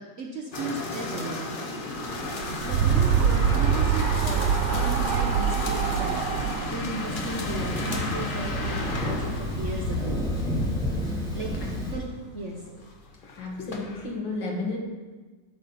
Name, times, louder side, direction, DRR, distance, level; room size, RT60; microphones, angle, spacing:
voice 1, 0.0-1.6 2.6-10.3 11.3-12.1 12.3-12.6, right 2 dB, 55° right, 1 dB, 0.9 m, -36 dB
sound 1, 0.5-14.1, left 2 dB, 45° left, 0.7 m, -34 dB
sound 2, 2.2-7.8, right 8 dB, 70° right, 1.2 m, -24 dB
Thunder, 7.0-11.9, left 1 dB, ahead, 2.9 m, -30 dB
voice 2, 13.4-14.8, left 3 dB, 80° left, -1 dB, 2.4 m, -32 dB
12.5 x 5.4 x 4.1 m, 1.3 s
omnidirectional pair, 2.0 m